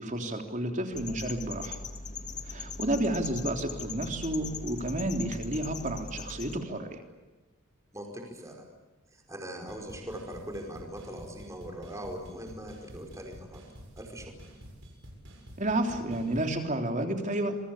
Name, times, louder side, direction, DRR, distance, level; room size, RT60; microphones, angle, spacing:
voice 1, 0.0-1.8 2.5-7.0 15.6-17.6, right 1 dB, 35° right, 5 dB, 3.4 m, -31 dB
sound 1, 0.9-6.6, left 4 dB, 30° left, 2.5 m, -40 dB
voice 2, 7.9-8.6 9.1-13.6 14.0-14.3, equal, 15° right, 2 dB, 5.0 m, -41 dB
sound 2, 9.7-16.5, equal, 55° right, 7.4 m, -49 dB
28.0 x 23.5 x 8.7 m, 1.1 s
head